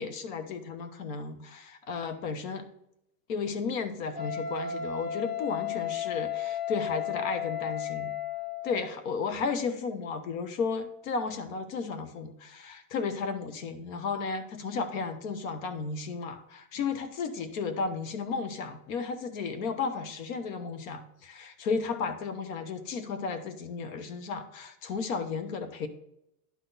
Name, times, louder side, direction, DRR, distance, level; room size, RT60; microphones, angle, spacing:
voice 1, 0.0-2.6 3.3-8.1 8.6-25.9, left 5 dB, 60° left, 9 dB, 1.1 m, -34 dB
Wind instrument woodwind instrument, 4.1-8.8, left 9 dB, ahead, 1.6 m, -34 dB
11.0 x 4.0 x 4.0 m, 0.81 s
supercardioid pair, 160°, 45 cm